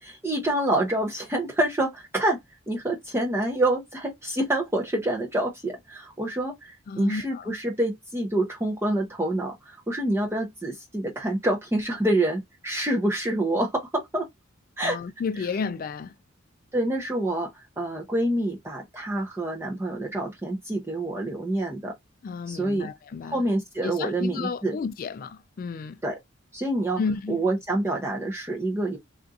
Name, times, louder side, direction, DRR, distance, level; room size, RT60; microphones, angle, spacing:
voice 1, 0.0-2.4 2.7-14.3 14.8-15.0 15.4-15.5 16.7-17.5 17.8-21.9 22.5-22.9 23.2-24.8 26.0-26.1 26.5-27.0 27.3-29.0, right 1 dB, 15° right, 0.6 m, -27 dB
voice 2, 6.9-7.5 14.8-16.1 22.2-23.4 23.8-26.0 27.0-27.4, left 5 dB, 45° left, 0.3 m, -32 dB
3.6 x 2.5 x 2.5 m
head